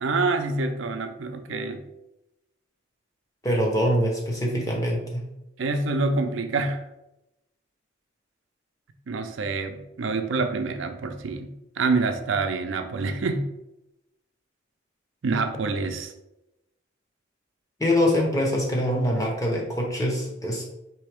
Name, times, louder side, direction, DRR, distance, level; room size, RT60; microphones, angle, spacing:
voice 1, 0.0-1.8 5.6-6.8 9.1-13.5 15.2-16.1, right 3 dB, 80° right, 7 dB, 0.5 m, -26 dB
voice 2, 3.4-5.2 17.8-20.6, equal, 15° left, -1 dB, 0.9 m, -24 dB
4.6 x 3.4 x 3.4 m, 0.93 s
head